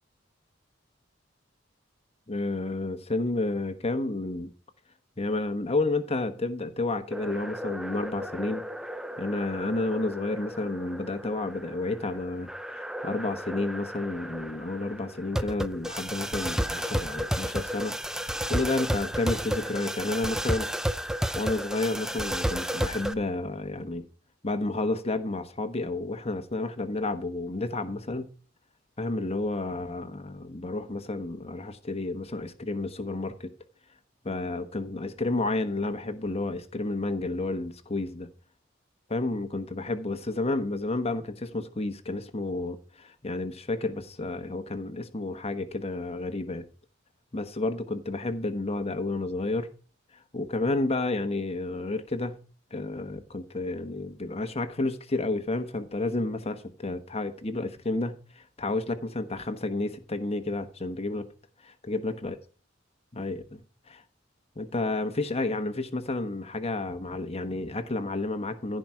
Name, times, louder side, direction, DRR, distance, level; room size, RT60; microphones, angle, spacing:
voice 1, 2.3-4.5 5.2-8.6 9.2-20.7 21.3-24.0 24.4-28.3 29.0-33.5 34.2-38.3 39.1-46.6 47.3-49.7 50.3-52.4 52.7-61.2 61.6-62.3 63.1-63.6 63.9-64.0 64.6-68.8, left 2 dB, 35° left, 1.2 m, -31 dB
sound 1, 7.1-23.1, equal, 5° right, 0.6 m, -33 dB
15.0 x 5.2 x 4.8 m
head